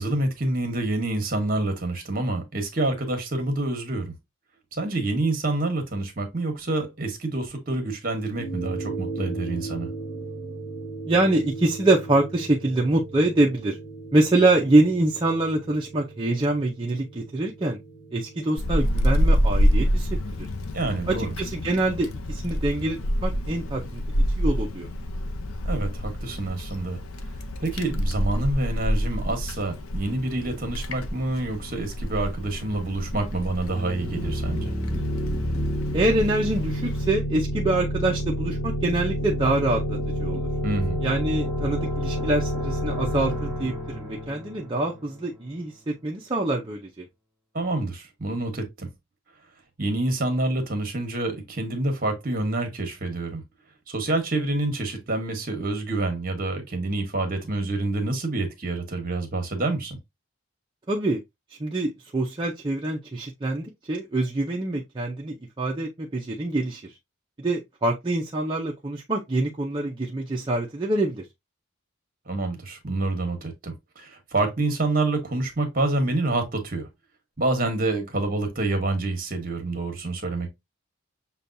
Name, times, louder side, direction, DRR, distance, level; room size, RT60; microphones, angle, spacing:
voice 1, 0.0-4.1 4.7-9.9 20.7-21.3 25.6-27.0 27.6-34.7 40.6-41.0 47.5-48.9 49.8-53.4 53.9-60.0 72.3-76.9 77.4-80.5, right 2 dB, 40° right, 1.2 m, -27 dB
sound 1, 8.4-22.9, right 3 dB, 55° left, 0.9 m, -38 dB
voice 2, 11.1-13.8 14.1-17.8 18.1-20.1 20.4-20.5 21.1-24.0 24.4-24.9 35.9-40.5 41.0-47.1 60.9-61.2 61.6-67.0 67.4-71.2, right 2 dB, 20° right, 0.5 m, -25 dB
Wind, 18.6-37.1, equal, 85° left, 0.6 m, -27 dB
sound 2, 33.7-45.3, equal, 5° right, 1.3 m, -29 dB
6.8 x 2.3 x 2.6 m
head